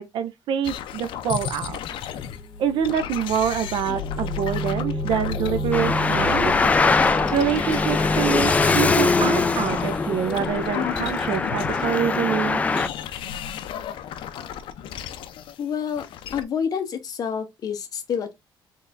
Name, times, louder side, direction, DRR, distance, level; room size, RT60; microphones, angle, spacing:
voice 1, 0.0-1.8 2.6-6.5 7.3-12.6, right 8 dB, 65° right, 0.4 m, -26 dB
sound 1, 0.6-2.5 2.8-5.8 6.1-9.0 9.4-12.4 12.7-16.4, left 9 dB, 70° left, 0.5 m, -34 dB
sound 2, 2.0-10.9, left 2 dB, 5° right, 1.8 m, -32 dB
Traffic noise roadway noise, 5.7-12.9, left 4 dB, 15° left, 0.3 m, -22 dB
voice 2, 15.6-16.1 16.3-18.3, left 7 dB, 45° left, 0.9 m, -28 dB
4.3 x 3.3 x 2.5 m
cardioid pair, 165°, 9 cm